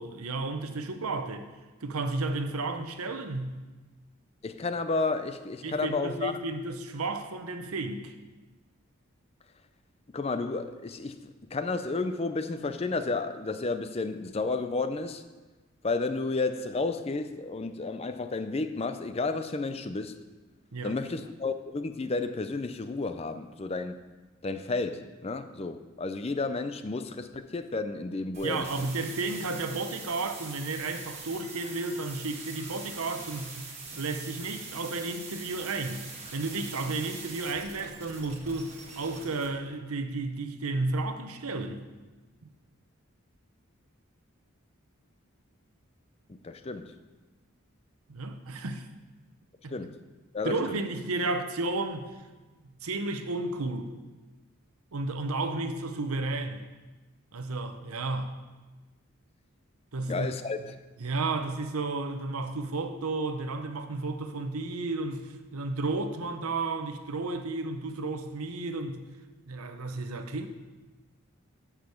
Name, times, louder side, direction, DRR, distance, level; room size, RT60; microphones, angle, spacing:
voice 1, 0.0-1.5 1.8-3.6 5.6-8.1 20.7-21.0 28.4-41.8 48.1-48.9 49.6-49.7 50.4-52.1 52.6-53.9 54.9-56.7 57.3-58.3 59.9-60.3 61.0-69.1 69.5-70.5, right 3 dB, 85° right, 7 dB, 0.8 m, -33 dB
voice 2, 4.4-6.3 10.1-15.2 15.8-20.2 20.8-24.0 24.4-28.7 46.3-46.9 49.7-50.0 50.3-50.8 60.1-60.7, left 3 dB, 30° left, 10 dB, 0.4 m, -32 dB
sound 1, 28.3-39.5, right 4 dB, 30° right, 1.5 m, -43 dB
8.1 x 6.1 x 7.0 m, 1.2 s
head